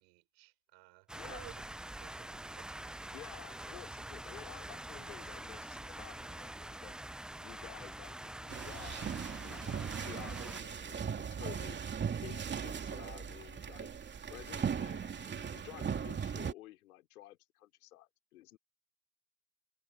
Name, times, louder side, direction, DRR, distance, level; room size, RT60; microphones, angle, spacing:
voice 1, 0.0-1.7 2.0-3.1, right 33 dB, 60° right, 7.1 m, -56 dB
voice 2, 1.1-1.5 3.1-7.0 7.4-9.2 9.4-9.7 10.0-11.8 12.2-13.9 14.3-18.6, left 15 dB, 80° left, 4.9 m, -52 dB
sound 1, 1.1-10.6, right 1 dB, ahead, 0.4 m, -45 dB
sound 2, 8.5-16.5, right 7 dB, 25° right, 2.7 m, -38 dB
hypercardioid pair, 100°, 44 cm